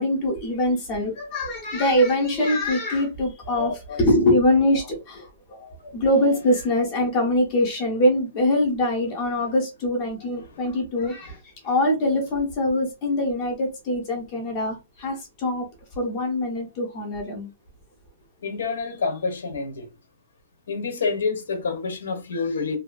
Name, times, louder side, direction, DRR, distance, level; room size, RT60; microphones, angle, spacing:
voice 1, 0.0-15.7 16.0-17.5, left 1 dB, 25° left, 0.7 m, -23 dB
voice 2, 3.6-4.0 18.4-19.8 20.7-22.8, left 4 dB, 75° left, 0.8 m, -28 dB
2.6 x 2.2 x 2.5 m
hypercardioid pair, 175°, 0 cm